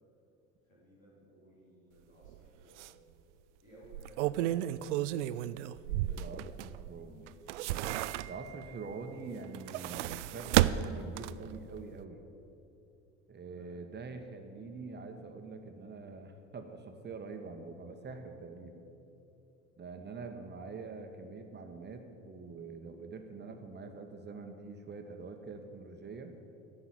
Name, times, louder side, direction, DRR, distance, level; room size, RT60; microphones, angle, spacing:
voice 1, 0.7-2.9 3.6-4.4 13.5-13.8, right 1 dB, 85° left, -6 dB, 3.5 m, -59 dB
sound 1, 2.2-2.4 2.8-2.9 3.8-6.9 7.3-8.6 9.4-11.6 11.9-12.0, right 14 dB, 65° right, 0.5 m, -32 dB
voice 2, 5.9-7.3 8.2-12.2 13.3-18.8 19.8-26.4, right 4 dB, 25° right, 5 dB, 1.3 m, -45 dB
11.0 x 7.1 x 9.6 m, 2.8 s
figure-of-eight pair, 65°, 39 cm